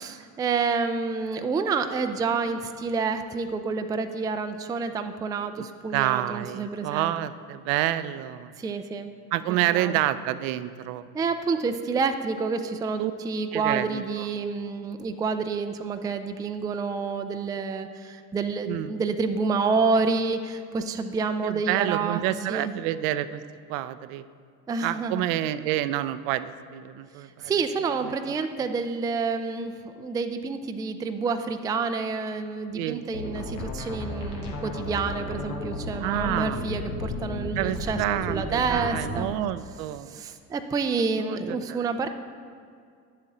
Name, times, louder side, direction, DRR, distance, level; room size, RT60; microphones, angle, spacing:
voice 1, 0.0-7.1 8.6-9.1 9.5-10.0 11.1-22.2 22.5-22.7 24.7-25.2 27.4-38.0 38.3-39.3 40.1-42.1, right 4 dB, 10° right, 8 dB, 0.3 m, -28 dB
voice 2, 5.9-8.5 9.3-11.1 13.0-13.1 13.5-14.3 18.7-18.9 21.4-23.4 23.7-24.2 24.8-27.5 32.7-33.6 36.0-36.6 37.6-40.2 41.2-42.1, right 13 dB, 60° right, 14 dB, 0.5 m, -28 dB
sound 1, 33.1-39.2, left 2 dB, 85° left, 1.4 m, -34 dB
10.5 x 7.4 x 3.8 m, 2.2 s
hypercardioid pair, 70°, 45 cm